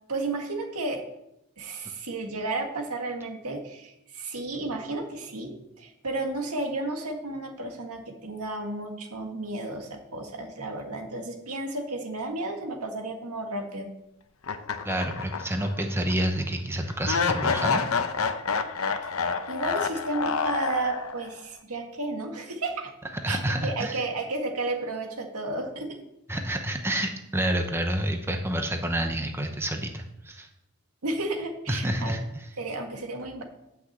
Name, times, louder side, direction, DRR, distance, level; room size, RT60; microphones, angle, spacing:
voice 1, 0.1-1.0 1.6-13.9 19.0-19.1 19.5-22.9 23.3-26.0 31.0-32.2 32.6-33.4, right 2 dB, 80° right, 3 dB, 1.8 m, -32 dB
sound 1, 14.4-15.7 16.1-16.2 17.1-21.4, left 5 dB, 65° left, 0.8 m, -28 dB
voice 2, 14.8-17.8 23.2-24.0 26.3-30.5 31.7-32.5, right 1 dB, 10° right, 4 dB, 0.8 m, -28 dB
9.1 x 6.0 x 7.9 m, 0.86 s
head